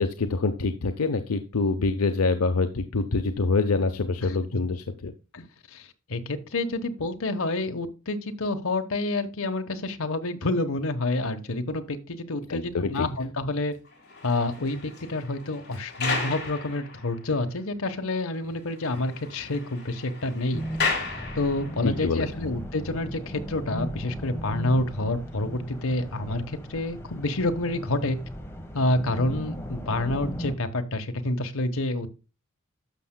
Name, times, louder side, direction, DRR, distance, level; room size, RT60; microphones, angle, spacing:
voice 1, 0.0-5.1 12.5-13.1 21.8-22.3, left 3 dB, 90° left, 7 dB, 0.7 m, -25 dB
voice 2, 5.7-13.7 14.2-20.6 21.3-28.2 28.7-32.1, left 2 dB, 70° left, 6 dB, 1.1 m, -28 dB
sound 1, 13.9-17.4 17.9-18.0 18.3-18.4 18.7-22.0, left 4 dB, 50° left, 3.3 m, -34 dB
sound 2, 20.5-30.6, equal, 10° left, 1.2 m, -37 dB
12.0 x 6.5 x 2.2 m, 0.31 s
head